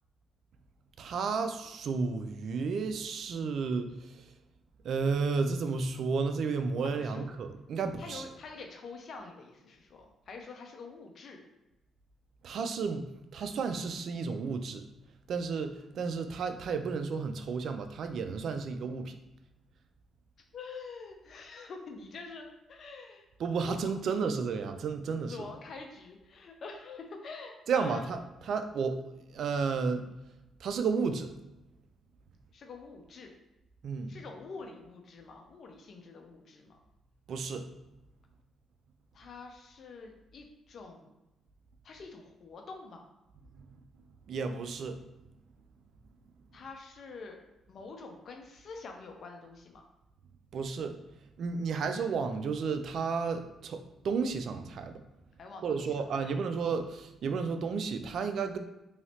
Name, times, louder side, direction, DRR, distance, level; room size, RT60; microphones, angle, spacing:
voice 1, 1.0-4.3 4.8-8.2 12.4-13.0 13.3-14.8 15.3-19.2 23.4-25.5 27.7-28.2 28.5-29.0 29.3-30.0 30.6-31.3 33.8-34.2 37.3-37.7 43.6-43.7 44.3-45.0 50.5-51.0 51.4-53.8 54.0-54.9 55.6-58.6, right 5 dB, 65° right, 8 dB, 0.3 m, -32 dB
voice 2, 7.0-7.4 8.0-11.4 20.5-23.3 23.7-24.3 25.3-28.1 32.5-33.3 34.1-36.8 39.1-41.1 41.8-43.1 46.5-47.4 47.7-49.8 55.4-56.3, left 4 dB, 55° left, 3 dB, 0.6 m, -46 dB
3.1 x 2.7 x 2.8 m, 0.96 s
cardioid pair, 90°, 0 cm